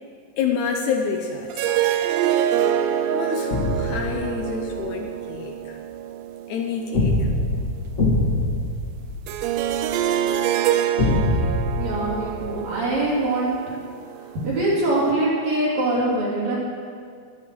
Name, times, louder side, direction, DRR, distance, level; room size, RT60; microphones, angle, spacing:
voice 1, 0.4-1.6 3.1-5.8 6.5-7.3, left 6 dB, 75° left, 3 dB, 2.0 m, -28 dB
sound 1, 1.5-7.4 9.3-14.5, right 10 dB, 80° right, 2.1 m, -26 dB
sound 2, 3.5-4.9 6.9-9.9 11.0-13.1, left 2 dB, 30° left, 1.7 m, -24 dB
voice 2, 11.8-13.5 14.3-16.6, right 2 dB, 55° right, -6 dB, 4.3 m, -23 dB
13.5 x 12.0 x 4.6 m, 2.2 s
omnidirectional pair, 3.8 m